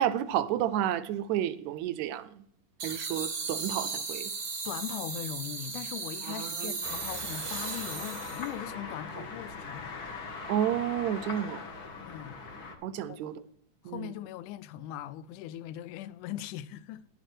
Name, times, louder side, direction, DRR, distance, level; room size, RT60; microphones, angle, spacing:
voice 1, 0.0-2.4 2.8-4.3 6.2-6.8 9.2-9.3 10.5-11.6 12.8-13.4 13.9-14.1, right 11 dB, 80° right, 1.8 m, -31 dB
sound 1, 2.8-8.6, right 4 dB, 55° right, 0.7 m, -36 dB
voice 2, 4.7-10.1 12.0-12.4 13.1-13.3 13.8-17.1, left 12 dB, 90° left, 2.1 m, -40 dB
sound 2, 6.8-12.7, left 4 dB, 60° left, 1.0 m, -41 dB
10.5 x 8.3 x 4.4 m
omnidirectional pair, 3.5 m